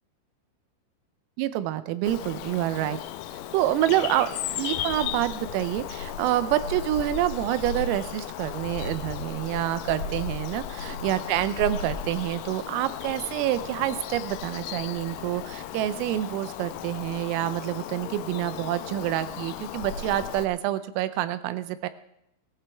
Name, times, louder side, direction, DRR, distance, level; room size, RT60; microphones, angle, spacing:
voice 1, 1.4-3.0 3.5-4.3 4.6-21.9, right 13 dB, 85° right, 13 dB, 3.4 m, -27 dB
Bird vocalization bird call bird song, 2.0-20.5, left 8 dB, 85° left, 3.4 m, -35 dB
sound 1, 7.3-17.3, right 1 dB, 25° right, 5.5 m, -56 dB
18.5 x 14.5 x 3.5 m, 0.81 s
omnidirectional pair, 5.9 m